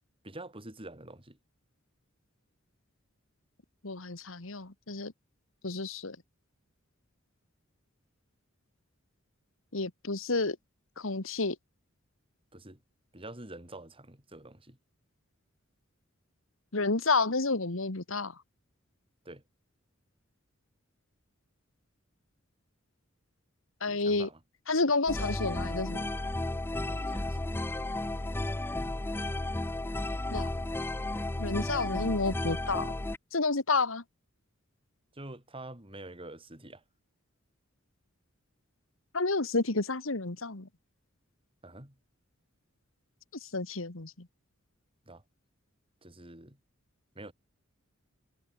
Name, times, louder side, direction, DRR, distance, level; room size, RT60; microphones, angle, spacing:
voice 1, 0.2-1.4 12.5-12.8 13.1-14.8 19.3-19.4 23.9-24.4 26.8-27.5 35.1-36.8 41.6-42.0 45.1-45.2 46.0-46.6 47.2-47.3, right 2 dB, 25° right, 5.3 m, -46 dB
voice 2, 3.8-5.1 5.6-6.2 9.7-10.6 11.0-11.6 16.7-18.3 23.8-24.3 24.7-26.0 30.3-30.5 31.4-32.9 33.3-34.0 39.1-40.7 43.4-44.3, left 3 dB, 70° left, 1.9 m, -30 dB
sound 1, 25.1-33.2, left 2 dB, 10° left, 0.4 m, -33 dB
head